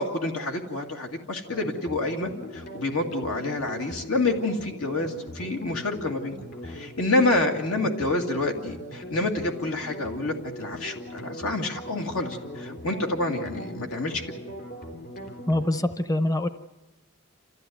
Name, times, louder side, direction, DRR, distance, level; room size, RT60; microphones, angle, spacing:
voice 1, 0.0-6.4 6.6-14.2, left 2 dB, 85° left, 2 dB, 2.3 m, -28 dB
sound 1, 1.5-15.8, equal, 50° left, 3.6 m, -40 dB
voice 2, 15.5-16.5, left 1 dB, 15° left, 11 dB, 0.7 m, -24 dB
28.0 x 14.5 x 9.4 m, 1.1 s
head